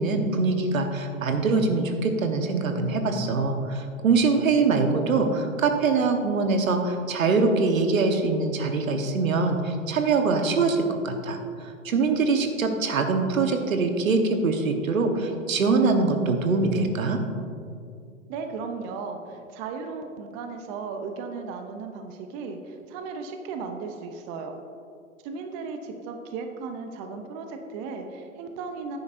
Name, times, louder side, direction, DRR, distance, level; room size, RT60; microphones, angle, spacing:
voice 1, 0.0-17.2, right 4 dB, 75° right, 5 dB, 1.2 m, -23 dB
voice 2, 18.3-24.6 25.2-29.0, right 4 dB, 25° right, 5 dB, 0.6 m, -36 dB
10.5 x 9.6 x 2.6 m, 2.4 s
hypercardioid pair, 120°, 41 cm